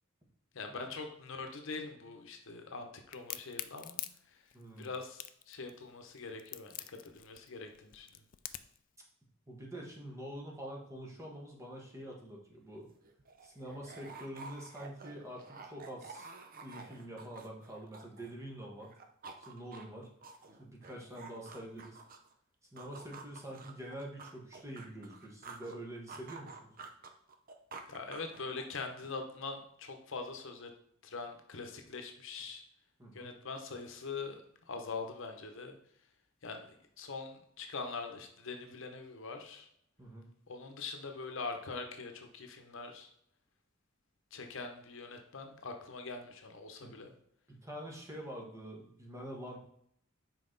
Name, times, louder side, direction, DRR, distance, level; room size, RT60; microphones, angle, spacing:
voice 1, 0.5-4.4 4.8-8.2 27.9-30.7 31.0-32.6 33.1-35.8 36.4-36.7 37.0-39.7 40.5-43.1 44.3-47.1, left 4 dB, 65° left, 5 dB, 0.8 m, -43 dB
Crack, 3.1-8.8, left 13 dB, 40° left, 0.3 m, -44 dB
voice 2, 4.5-4.9 9.5-12.9 13.4-16.3 16.6-18.9 19.4-20.1 20.6-22.0 22.7-26.7 33.0-33.3 40.0-40.3 46.8-46.9 47.5-49.6, right 1 dB, 15° right, -1 dB, 1.3 m, -46 dB
sound 1, 12.7-12.8 13.0-18.5 18.8-22.3 22.8-25.8 26.1-28.8, right 4 dB, 45° right, 0.6 m, -50 dB
5.8 x 4.6 x 3.9 m, 0.70 s
head